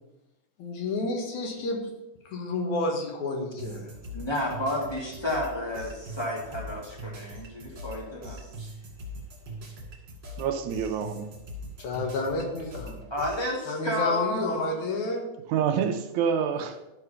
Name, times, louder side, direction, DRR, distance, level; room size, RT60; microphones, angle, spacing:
voice 1, 0.6-1.9 2.3-3.9 11.8-13.0 13.7-15.3, left 2 dB, 70° left, 2 dB, 2.7 m, -30 dB
sound 1, 3.6-13.5, equal, 45° right, 2.9 m, -42 dB
voice 2, 4.1-8.7 13.1-14.8, left 2 dB, 10° left, -2 dB, 1.3 m, -31 dB
voice 3, 10.4-11.3 15.5-16.8, right 7 dB, 75° right, 6 dB, 1.9 m, -27 dB
12.0 x 4.8 x 5.6 m, 0.95 s
omnidirectional pair, 3.6 m